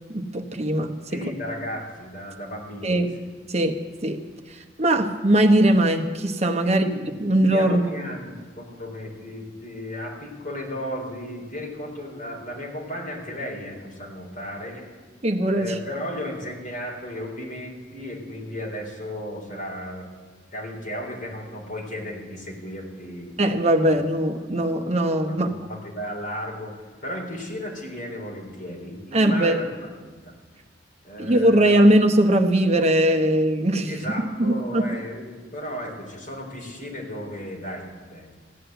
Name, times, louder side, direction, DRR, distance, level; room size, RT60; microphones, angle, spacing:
voice 1, 0.1-1.2 2.8-3.1 3.5-4.2 4.5-6.8 7.2-8.1 15.2-15.7 23.4-25.5 29.1-29.6 31.2-33.9 34.4-34.9, right 1 dB, 35° right, 5 dB, 1.0 m, -20 dB
voice 2, 1.1-3.1 4.4-4.5 6.6-15.0 15.5-20.1 20.5-23.4 23.8-23.9 25.3-30.3 31.0-31.8 33.9-38.4, equal, 45° left, -1 dB, 3.9 m, -35 dB
16.0 x 9.8 x 7.9 m, 1.4 s
head